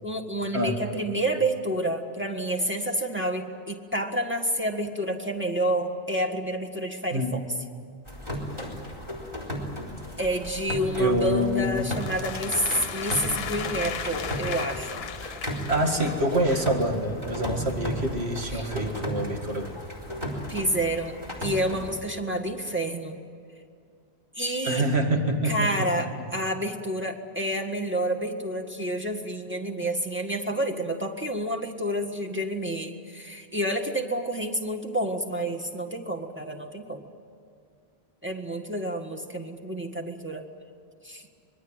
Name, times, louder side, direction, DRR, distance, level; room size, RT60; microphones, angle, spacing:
voice 1, 0.0-7.4 10.2-14.9 18.5-18.7 20.5-23.2 24.3-24.8 25.4-37.1 38.2-40.4 41.0-41.2, right 1 dB, 10° right, 1 dB, 1.6 m, -29 dB
sound 1, 8.1-21.9, left 1 dB, 25° right, 4.2 m, -35 dB
voice 2, 11.0-11.9 15.2-15.4 15.7-19.7 24.6-25.9, right 1 dB, 75° right, 3 dB, 2.4 m, -26 dB
sound 2, 11.9-16.8, left 7 dB, 70° left, 1.1 m, -36 dB
25.5 x 21.5 x 9.0 m, 2.2 s
omnidirectional pair, 1.1 m